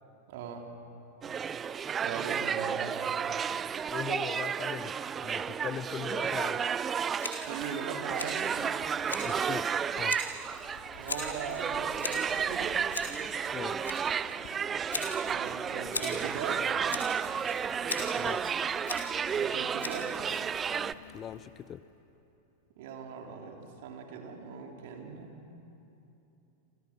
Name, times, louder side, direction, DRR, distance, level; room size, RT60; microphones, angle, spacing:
voice 1, 0.3-0.7 2.0-3.0 7.4-8.6 10.9-12.8 15.3-16.7 19.3-20.1 22.8-25.4, right 6 dB, 50° right, 2 dB, 3.3 m, -40 dB
sound 1, 1.2-20.9, right 7 dB, 20° right, 0.5 m, -32 dB
voice 2, 3.9-6.6 9.2-9.7 10.0-10.2 13.5-13.8 18.1-18.4 21.1-21.8, left 9 dB, 25° left, 17 dB, 0.6 m, -39 dB
Scissors, 7.2-20.9, left 3 dB, 75° left, 4.0 m, -41 dB
Rain, 7.2-22.0, left 6 dB, 45° left, 2.6 m, -53 dB
29.5 x 28.0 x 6.1 m, 2.9 s
figure-of-eight pair, 90°, 0 cm